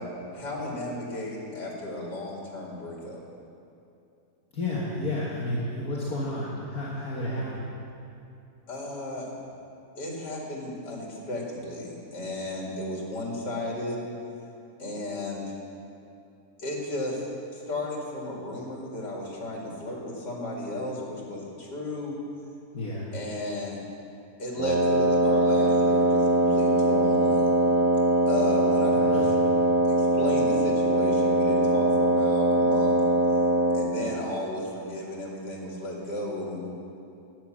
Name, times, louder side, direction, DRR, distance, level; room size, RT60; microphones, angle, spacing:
voice 1, 0.3-3.2 8.7-9.3 10.0-14.0 14.8-15.5 16.6-17.2 17.5-22.2 23.1-23.8 24.4-27.5 28.3-29.3 29.9-33.0 33.7-36.7, left 1 dB, 85° left, -2 dB, 3.0 m, -34 dB
voice 2, 4.5-7.7 22.7-23.1 28.9-29.2, left 1 dB, 65° left, -6 dB, 2.1 m, -31 dB
Wind instrument woodwind instrument, 24.6-33.9, right 1 dB, 55° right, 1.4 m, -22 dB
11.5 x 9.5 x 7.5 m, 2.6 s
omnidirectional pair, 1.8 m